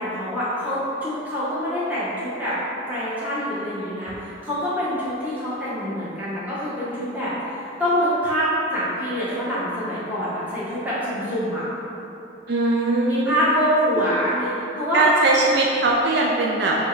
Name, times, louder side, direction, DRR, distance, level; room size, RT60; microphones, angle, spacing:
voice 1, 0.0-2.5 2.9-4.1 4.4-7.3 7.8-11.6 13.1-15.0, equal, 10° right, -11 dB, 1.0 m, -25 dB
voice 2, 12.5-13.5 14.9-16.8, right 2 dB, 60° right, -3 dB, 0.3 m, -20 dB
4.4 x 2.2 x 4.4 m, 2.9 s
head